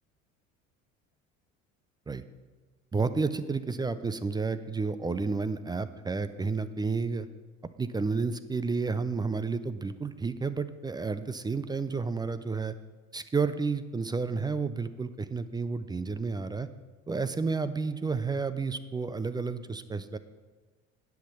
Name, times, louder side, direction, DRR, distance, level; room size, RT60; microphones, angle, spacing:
voice 1, 2.9-7.3 7.8-12.7 13.1-16.7 17.1-20.2, right 4 dB, 10° right, 13 dB, 0.4 m, -31 dB
10.0 x 5.7 x 6.8 m, 1.3 s
figure-of-eight pair, 60°, 39 cm